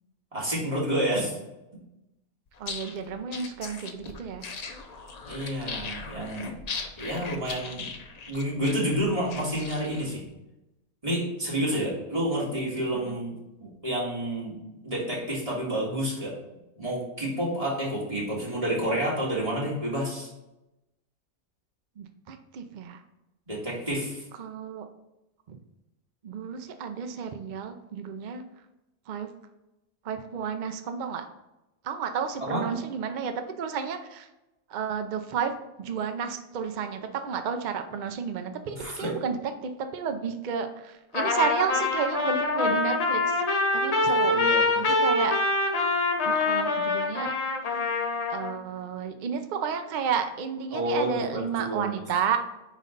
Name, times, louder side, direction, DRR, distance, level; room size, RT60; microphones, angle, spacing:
voice 1, 0.3-1.4 5.3-6.5 7.0-7.8 8.3-10.2 11.0-13.3 13.6-14.5 14.8-16.3 16.8-20.3 23.5-24.2 32.4-32.6 38.8-39.1 44.2-44.6 50.7-51.9, right 1 dB, 25° right, -5 dB, 2.0 m, -29 dB
sound 1, 2.5-10.1, left 4 dB, 75° left, 0.3 m, -39 dB
voice 2, 2.6-4.5 11.6-11.8 12.9-13.2 22.0-23.0 24.4-24.9 25.5-25.6 26.2-28.4 29.1-29.3 30.0-31.2 31.8-34.3 34.7-35.5 35.8-43.4 43.7-44.4 44.8-45.4 46.2-47.3 48.3-52.4, right 6 dB, 85° right, 7 dB, 0.4 m, -32 dB
Trumpet, 41.1-48.5, left 3 dB, 50° left, 1.2 m, -25 dB
9.1 x 3.2 x 3.9 m, 0.96 s
omnidirectional pair, 1.6 m